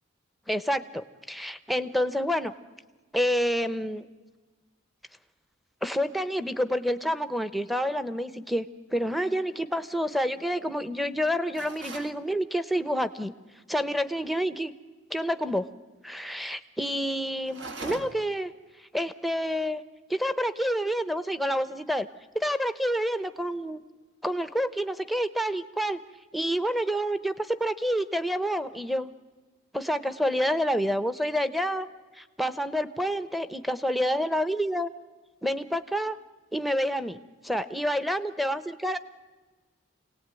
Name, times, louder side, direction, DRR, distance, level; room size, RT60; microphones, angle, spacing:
voice 1, 0.5-2.5 3.1-4.1 5.8-13.3 13.7-14.7 15.1-15.7 16.0-18.5 18.9-19.8 20.1-22.1 22.3-23.8 24.2-26.0 26.3-29.1 29.7-31.9 32.1-34.9 35.4-36.2 36.5-37.2 37.4-39.0, equal, ahead, 11 dB, 0.8 m, -28 dB
sound 1, 11.5-12.2 17.4-18.4, right 2 dB, 60° right, 1.6 m, -40 dB
27.0 x 18.0 x 9.1 m, 1.3 s
head